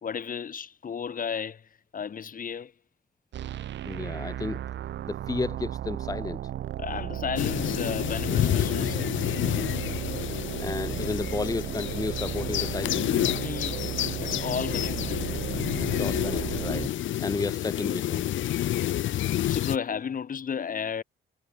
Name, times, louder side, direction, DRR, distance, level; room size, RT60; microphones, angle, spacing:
voice 1, 0.0-2.7 6.8-9.2 13.4-13.8 14.2-15.3 19.5-21.0, left 7 dB, 45° left, 1.6 m, -34 dB
sound 1, 3.3-16.9, right 12 dB, 65° right, 0.9 m, -34 dB
voice 2, 3.8-4.6 5.1-6.4 10.6-13.1 15.9-16.9 17.2-18.3, left 3 dB, 20° left, 1.0 m, -32 dB
sound 2, 7.4-19.8, left 12 dB, 75° left, 1.5 m, -29 dB
cardioid pair, 90°, 20 cm